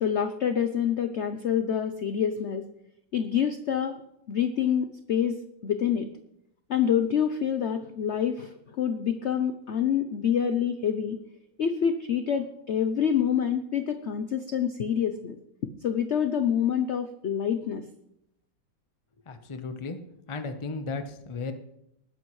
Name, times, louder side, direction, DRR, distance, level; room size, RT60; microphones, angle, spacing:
voice 1, 0.0-2.6 3.1-4.0 4.3-6.1 6.7-11.2 11.6-15.4 15.8-17.8, left 8 dB, 65° left, 9 dB, 0.6 m, -27 dB
voice 2, 19.3-20.0 20.3-21.5, left 4 dB, 30° left, 8 dB, 0.6 m, -35 dB
20.0 x 10.5 x 3.2 m, 0.78 s
omnidirectional pair, 2.0 m